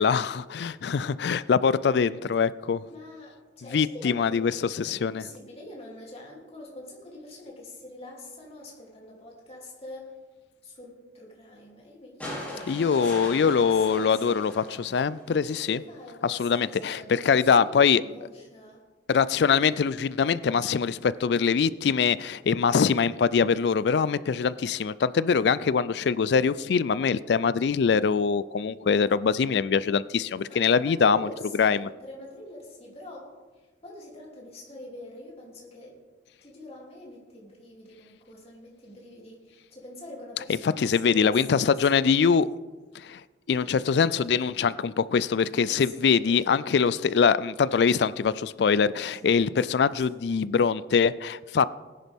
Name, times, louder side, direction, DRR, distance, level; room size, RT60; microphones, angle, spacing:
voice 1, 0.0-2.9 3.7-5.2 12.7-15.8 16.2-18.0 19.1-31.3 31.6-31.9 40.8-42.5 42.9-43.2 43.5-51.7, left 6 dB, 65° left, 0.4 m, -23 dB
voice 2, 2.9-10.2 10.6-14.5 15.5-18.8 30.5-36.0 36.4-42.1 45.7-46.7 49.0-50.0, left 1 dB, 35° left, 3.0 m, -45 dB
sound 1, 12.2-15.5 16.8-16.9, left 1 dB, 10° left, 3.6 m, -40 dB
18.5 x 10.5 x 3.6 m
head